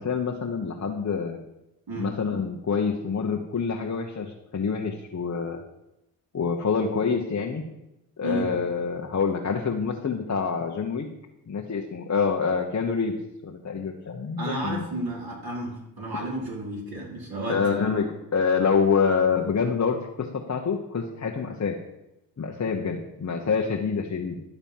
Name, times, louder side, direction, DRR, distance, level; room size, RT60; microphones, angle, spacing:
voice 1, 0.0-1.4 2.0-5.6 6.3-7.6 8.2-11.1 11.5-13.1 13.4-14.8 16.1-16.2 17.5-21.8 22.4-24.4, left 5 dB, 35° left, 1 dB, 1.2 m, -26 dB
voice 2, 14.4-17.6, right 1 dB, 50° right, -3 dB, 4.4 m, -32 dB
11.5 x 4.0 x 7.4 m, 0.91 s
supercardioid pair, 50°, 45 cm